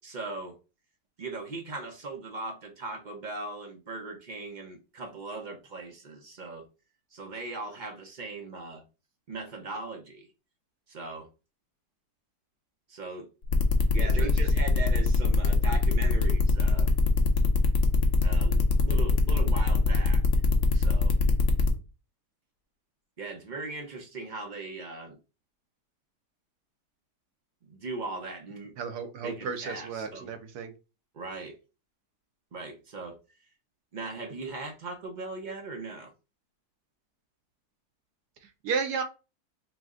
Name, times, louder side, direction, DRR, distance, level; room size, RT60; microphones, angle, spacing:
voice 1, 0.0-0.6 1.2-6.7 7.1-8.8 9.3-10.3 10.9-11.3 12.9-13.3 13.9-16.9 18.2-20.2 20.7-21.1 23.2-25.2 27.7-28.8 29.2-30.3 31.1-31.6 32.5-33.2 33.9-36.1, right 3 dB, 50° right, 0.5 m, -39 dB
sound 1, 13.5-21.7, left 5 dB, 55° left, 0.7 m, -25 dB
voice 2, 14.0-14.3 28.8-30.7 38.6-39.0, right 5 dB, 75° right, 1.2 m, -33 dB
5.0 x 2.1 x 3.6 m
omnidirectional pair, 1.8 m